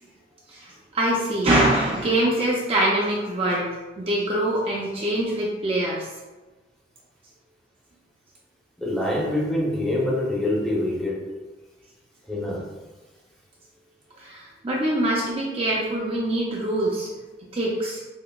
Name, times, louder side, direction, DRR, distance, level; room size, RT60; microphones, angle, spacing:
voice 1, 0.5-3.7 4.0-6.1 14.2-17.1 17.5-18.0, right 1 dB, 30° right, -4 dB, 0.4 m, -24 dB
voice 2, 8.8-11.3 12.2-12.7 17.4-17.5, left 1 dB, ahead, -6 dB, 0.7 m, -25 dB
5.5 x 2.1 x 2.2 m, 1.2 s
head